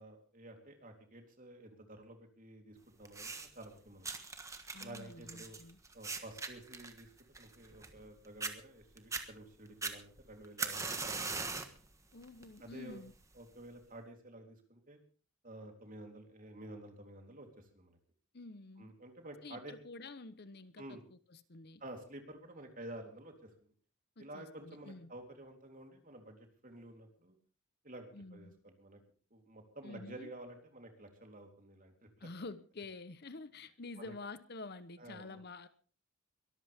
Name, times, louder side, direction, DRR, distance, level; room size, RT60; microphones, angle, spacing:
voice 1, 0.0-4.1 4.8-5.6 5.9-7.1 7.4-11.8 12.6-13.0 13.3-15.0 15.4-18.0 18.8-19.7 20.8-21.0 21.8-23.7 24.2-27.4 27.8-29.0 29.3-32.3 34.0-34.1 35.0-35.4, right 1 dB, 40° right, 4 dB, 3.5 m, -51 dB
sound 1, 3.0-3.6 4.0-8.1 8.4-8.5 9.0-9.2 9.8-11.8 12.2-12.6 13.4-13.5, right 4 dB, 15° right, 1.3 m, -40 dB
voice 2, 4.7-5.8 12.1-13.1 18.3-18.9 19.4-21.8 24.2-25.1 28.1-28.6 29.8-30.3 32.2-35.7, left 3 dB, 45° left, 13 dB, 0.9 m, -49 dB
22.5 x 14.0 x 3.6 m, 0.40 s
head